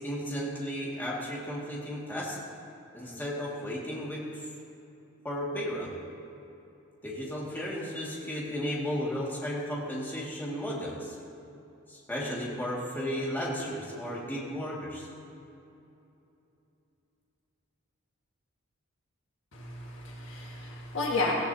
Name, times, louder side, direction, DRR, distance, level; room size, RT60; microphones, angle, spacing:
voice 1, 0.0-2.4 2.9-4.4 5.2-5.9 7.0-11.2 11.9-15.1, equal, 10° left, -5 dB, 2.0 m, -34 dB
voice 2, 19.5-21.3, left 3 dB, 55° left, -2 dB, 1.7 m, -32 dB
17.5 x 15.0 x 2.8 m, 2.8 s
head